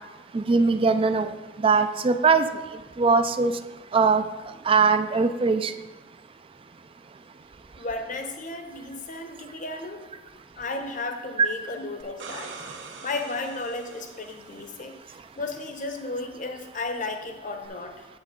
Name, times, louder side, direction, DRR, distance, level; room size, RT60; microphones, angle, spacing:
voice 1, 0.3-1.3 1.6-2.4 3.0-3.5 3.9-4.2 4.7-5.7 11.4-11.5, right 4 dB, 30° right, 10 dB, 0.4 m, -20 dB
voice 2, 7.8-10.0 10.6-12.5 13.0-18.1, left 2 dB, 45° left, 5 dB, 0.9 m, -34 dB
sound 1, 12.0-14.8 17.6-17.7, right 4 dB, 85° right, 1.0 m, -43 dB
8.2 x 8.0 x 3.7 m, 1.1 s
head